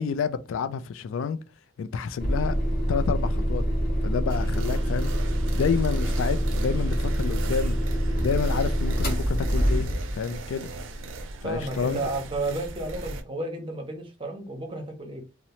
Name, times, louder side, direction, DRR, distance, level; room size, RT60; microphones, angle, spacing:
voice 1, 0.0-1.4 1.8-2.6 2.9-3.6 4.0-5.1 5.5-7.8 8.2-9.9 10.1-10.7 11.4-12.0, left 6 dB, 80° left, 0.3 m, -29 dB
sound 1, 2.2-10.2, equal, 50° left, 0.9 m, -25 dB
sound 2, 4.3-13.2, right 3 dB, 75° right, 0.5 m, -39 dB
voice 2, 11.4-15.2, right 2 dB, 25° right, 0.6 m, -32 dB
2.7 x 2.0 x 3.0 m
head